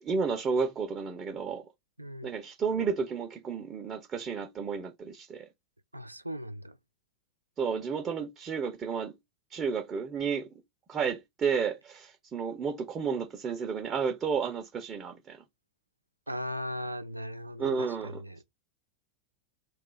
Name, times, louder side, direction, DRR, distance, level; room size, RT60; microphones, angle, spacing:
voice 1, 0.0-1.6 2.2-5.5 7.6-9.1 9.5-10.5 10.9-15.4 17.6-18.4, right 5 dB, 25° right, 0.5 m, -32 dB
voice 2, 2.0-2.3 5.9-6.8 16.3-18.4, equal, 85° right, 0.3 m, -38 dB
2.3 x 2.3 x 3.8 m
figure-of-eight pair, 90°, 0 cm